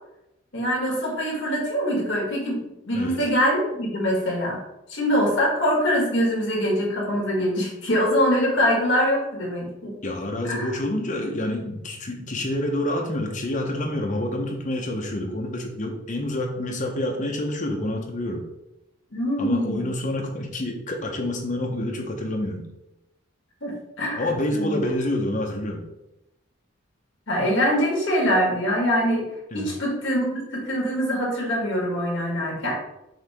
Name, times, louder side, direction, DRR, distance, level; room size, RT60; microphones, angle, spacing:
voice 1, 0.5-2.6 2.9-4.6 4.9-10.0 10.5-10.7 19.1-19.9 23.6-24.8 27.3-29.2 29.5-32.8, equal, 60° left, -2 dB, 1.6 m, -24 dB
voice 2, 2.9-3.3 10.0-18.5 19.4-22.7 24.2-25.9 29.5-29.7, left 1 dB, 40° left, 2 dB, 0.7 m, -28 dB
5.6 x 2.8 x 3.4 m, 0.88 s
head